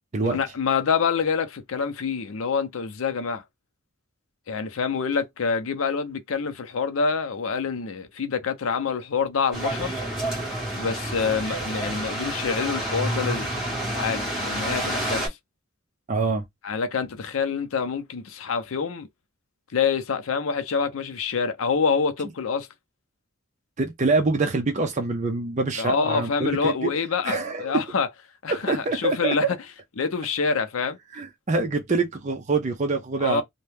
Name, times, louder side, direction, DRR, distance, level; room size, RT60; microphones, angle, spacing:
voice 1, 0.2-3.4 4.5-9.9 10.7-15.4 16.6-19.1 19.7-22.7 25.8-28.1 28.4-29.6 30.0-31.0 33.2-33.4, left 5 dB, 80° left, 0.5 m, -26 dB
sound 1, 9.5-15.3, right 1 dB, ahead, 1.4 m, -29 dB
voice 2, 16.1-16.4 23.8-26.9 27.2-27.8 28.5-29.5 31.1-33.4, right 3 dB, 35° right, 0.5 m, -25 dB
2.7 x 2.2 x 3.3 m
head